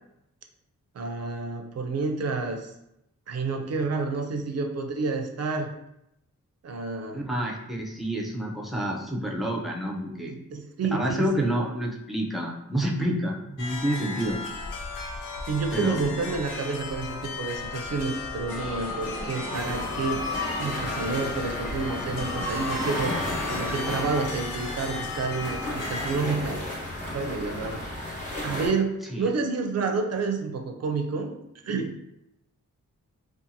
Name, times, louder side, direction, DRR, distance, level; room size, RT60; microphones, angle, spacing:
voice 1, 0.9-2.7 3.3-5.7 6.6-7.2 10.3-11.5 15.4-20.3 20.6-23.2 23.5-26.7 27.1-28.1 28.4-31.4 31.6-32.0, right 4 dB, 55° right, 4 dB, 0.4 m, -29 dB
voice 2, 7.1-10.3 10.9-14.4 15.7-16.1 29.1-29.3, equal, ahead, -1 dB, 0.5 m, -29 dB
sound 1, 13.6-26.2, left 4 dB, 85° left, 0.5 m, -36 dB
sound 2, 18.5-24.2, left 1 dB, 60° left, 1.4 m, -35 dB
sound 3, 19.5-28.7, left 1 dB, 25° left, 1.0 m, -34 dB
2.6 x 2.4 x 2.6 m, 0.82 s
wide cardioid pair, 85°, 31 cm